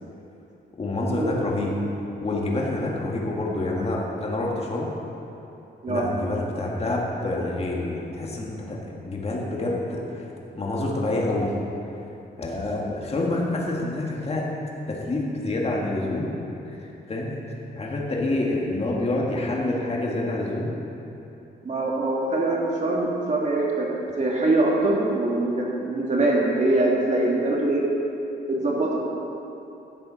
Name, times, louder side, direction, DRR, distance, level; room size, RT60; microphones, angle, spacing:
voice 1, 0.8-1.8 2.2-4.9 5.9-10.3 10.5-11.5 12.4-14.5 14.9-16.3 16.7-20.7, left 2 dB, 35° left, -2 dB, 1.9 m, -27 dB
voice 2, 21.6-23.9 24.2-27.8 28.5-29.0, right 2 dB, 40° right, -3 dB, 2.4 m, -23 dB
11.5 x 7.9 x 5.8 m, 2.9 s
cardioid pair, 100°, 18 cm